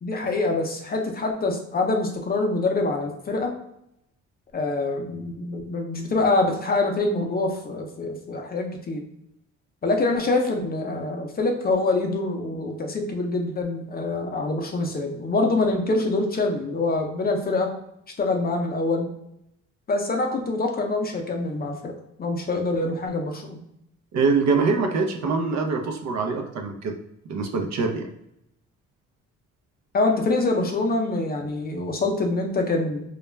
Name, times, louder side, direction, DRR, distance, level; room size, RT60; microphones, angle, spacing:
voice 1, 0.0-3.5 4.5-9.0 9.8-17.7 18.2-19.1 19.9-21.9 22.2-23.6 29.9-33.0, left 2 dB, 30° left, 3 dB, 0.5 m, -25 dB
voice 2, 24.1-26.9 27.3-28.1, right 4 dB, 65° right, 4 dB, 0.6 m, -24 dB
2.3 x 2.1 x 3.2 m, 0.79 s
cardioid pair, 90°, 30 cm